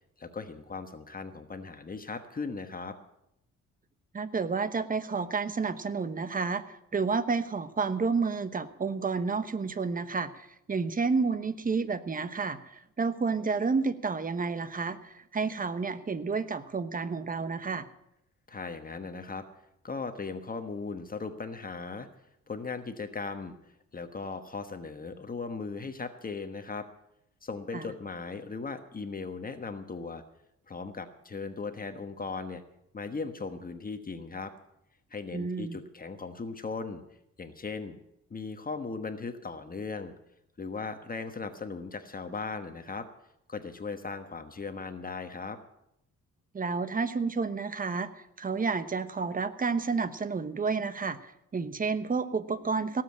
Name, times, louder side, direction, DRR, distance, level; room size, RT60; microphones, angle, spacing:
voice 1, 0.2-3.0 18.5-19.4 19.8-22.1 22.5-26.9 27.4-30.2 30.7-32.6 32.9-34.5 35.1-37.0 37.4-38.0 38.3-40.1 40.6-43.1 43.5-45.6, left 4 dB, 30° left, 8 dB, 1.2 m, -38 dB
voice 2, 4.1-17.9 27.7-27.8 35.3-35.8 46.5-53.0, right 4 dB, 30° right, 13 dB, 1.1 m, -30 dB
17.5 x 7.7 x 8.6 m, 0.80 s
cardioid pair, 90°, 30 cm